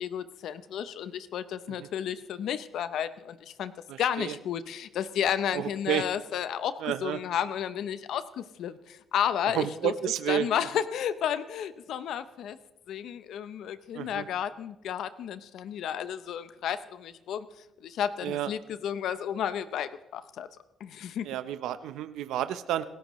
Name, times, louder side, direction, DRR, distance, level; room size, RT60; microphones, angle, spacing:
voice 1, 0.0-3.7 4.0-9.9 10.3-12.6 12.9-17.5 17.8-20.5 20.8-21.3, left 9 dB, 75° left, 14 dB, 0.6 m, -32 dB
voice 2, 3.9-4.4 5.5-6.1 6.8-7.2 9.5-10.5 13.9-14.3 18.2-18.5 21.2-22.8, right 11 dB, 90° right, 12 dB, 0.7 m, -31 dB
26.5 x 14.0 x 3.1 m, 0.95 s
cardioid pair, 90°, 0 cm